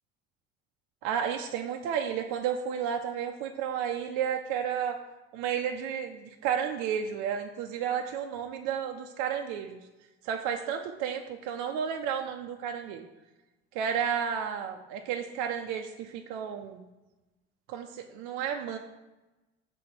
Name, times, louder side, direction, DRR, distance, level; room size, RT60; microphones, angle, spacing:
voice 1, 1.0-5.0 5.3-9.8 10.2-13.1 13.7-16.8 17.7-18.8, right 8 dB, 75° right, 3 dB, 0.8 m, -32 dB
6.6 x 4.2 x 6.5 m, 1.1 s
hypercardioid pair, 65°, 30 cm